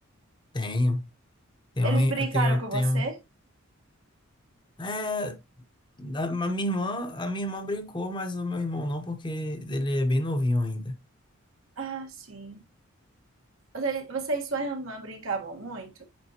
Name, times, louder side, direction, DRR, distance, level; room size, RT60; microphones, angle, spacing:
voice 1, 0.5-1.1 1.8-3.1 4.8-5.4 6.0-10.9, left 1 dB, 20° left, 0.8 m, -28 dB
voice 2, 1.8-3.2 11.8-12.6 13.7-16.0, right 4 dB, 70° right, 1.5 m, -32 dB
8.8 x 3.8 x 2.8 m
head